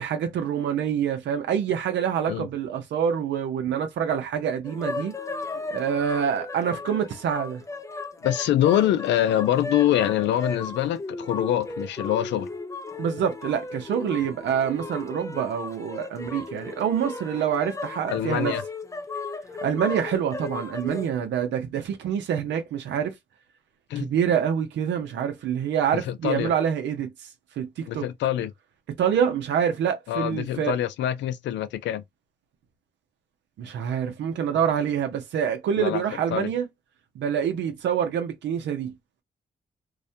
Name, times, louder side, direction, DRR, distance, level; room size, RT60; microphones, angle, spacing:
voice 1, 0.0-5.1 5.7-7.6 13.0-18.6 19.6-23.1 24.0-27.1 27.6-28.1 29.0-30.7 33.6-36.7 37.2-38.9, right 8 dB, 85° right, 0.6 m, -26 dB
sound 1, 4.6-21.1, left 3 dB, 15° left, 0.4 m, -36 dB
voice 2, 8.2-12.5 18.1-18.6 23.9-24.1 26.1-26.5 27.9-28.5 30.1-32.0 35.8-36.0 36.3-36.5, left 12 dB, 90° left, 0.4 m, -24 dB
2.4 x 2.1 x 2.7 m
cardioid pair, 70°, 18 cm